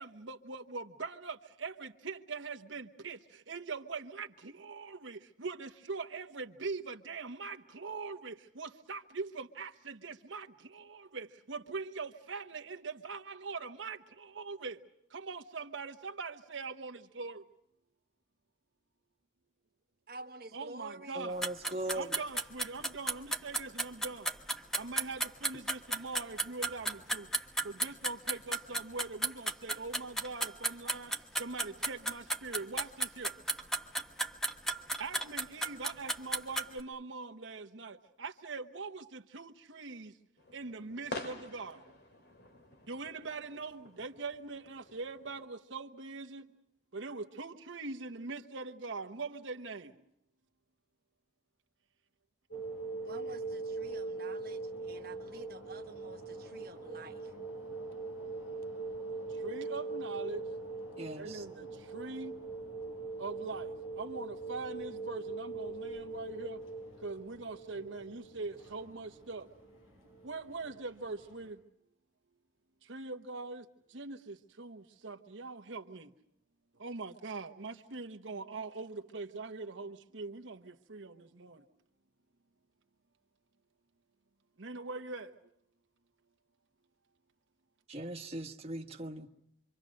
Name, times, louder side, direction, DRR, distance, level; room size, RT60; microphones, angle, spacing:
voice 1, 0.0-3.2 3.5-10.5 10.7-14.8 15.1-17.4 20.5-21.4 21.9-24.3 24.8-27.3 27.6-31.1 31.4-33.3 35.0-40.1 40.5-41.8 42.9-46.4 46.9-49.9 59.4-60.4 61.2-61.7 61.9-62.3 63.2-63.7 64.0-66.6 67.0-69.5 70.2-71.6 72.9-73.6 73.9-76.1 76.8-81.6 84.6-85.3, right 4 dB, 70° right, 1.1 m, -42 dB
voice 2, 20.1-21.3 53.0-57.3, right 2 dB, 50° right, 1.3 m, -49 dB
voice 3, 21.1-22.1 61.0-61.4 87.9-89.3, right 1 dB, 30° right, 1.4 m, -39 dB
sound 1, 21.4-36.8, right 1 dB, 5° left, 1.2 m, -33 dB
sound 2, 40.4-45.5, left 2 dB, 55° left, 2.5 m, -48 dB
sound 3, 52.5-71.4, right 3 dB, 90° left, 7.0 m, -42 dB
27.0 x 25.0 x 6.4 m
head